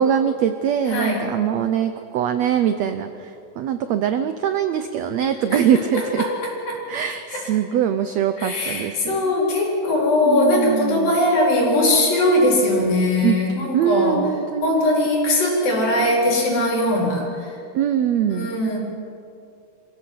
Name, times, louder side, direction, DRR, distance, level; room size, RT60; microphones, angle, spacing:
voice 1, 0.0-6.2 6.9-9.3 10.3-11.1 13.2-13.4 13.7-15.1 17.7-18.5, right 9 dB, 85° right, 9 dB, 1.5 m, -22 dB
voice 2, 0.9-1.2 5.5-5.6 5.9-6.8 7.3-7.4 8.4-14.2 14.6-17.6 18.3-18.8, left 1 dB, 75° left, -2 dB, 5.9 m, -20 dB
25.5 x 15.5 x 7.8 m, 2.6 s
omnidirectional pair, 4.0 m